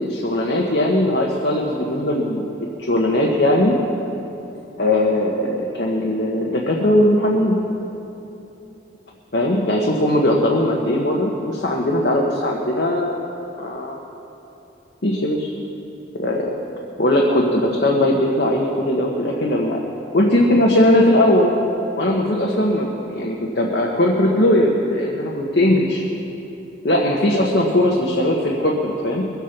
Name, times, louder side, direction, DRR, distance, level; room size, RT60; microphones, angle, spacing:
voice 1, 0.0-3.8 4.8-7.6 9.3-13.1 13.6-14.0 15.0-15.5 16.2-16.5 17.0-19.8 20.1-21.5 22.0-26.0 26.8-29.3, left 1 dB, 65° left, -1 dB, 1.3 m, -19 dB
22.0 x 8.2 x 6.0 m, 3.0 s
head